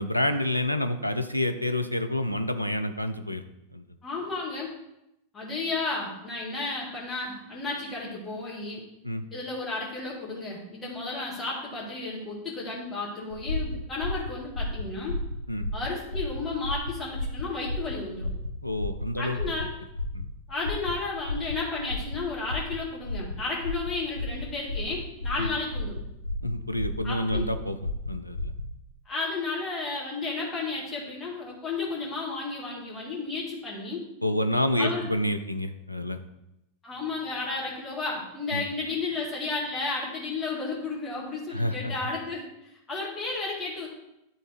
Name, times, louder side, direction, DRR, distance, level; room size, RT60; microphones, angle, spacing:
voice 1, 0.0-3.4 3.7-3.8 9.0-9.2 15.5-15.7 18.6-19.4 20.1-20.3 25.4-25.5 26.4-27.8 28.1-28.5 34.2-36.2 38.5-38.6 41.5-41.9, left 1 dB, 90° left, 8 dB, 0.5 m, -28 dB
voice 2, 4.0-4.7 5.3-8.8 9.3-15.1 15.7-18.3 19.2-19.7 20.5-26.0 27.0-27.4 29.1-34.0 34.8-35.0 36.8-42.5 42.9-43.9, left 3 dB, 20° left, -5 dB, 2.0 m, -33 dB
sound 1, 13.3-28.7, left 1 dB, 85° right, 0.8 m, -33 dB
10.5 x 3.8 x 4.5 m, 0.85 s
figure-of-eight pair, 90°, 0 cm